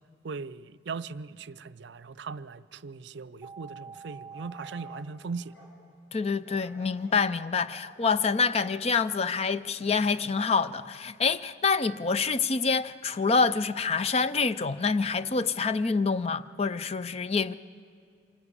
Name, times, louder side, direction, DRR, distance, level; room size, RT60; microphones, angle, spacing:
voice 1, 0.2-5.6, right 4 dB, 65° right, 0.5 m, -39 dB
sound 1, 3.4-5.0, right 6 dB, 5° right, 0.8 m, -45 dB
sound 2, 4.1-5.8 6.4-7.3 7.7-7.9 8.3-8.8 9.3-9.6 10.1-10.3, equal, 70° left, 5.5 m, -55 dB
voice 2, 6.1-17.5, left 4 dB, 35° left, 0.4 m, -26 dB
26.0 x 11.0 x 9.7 m
head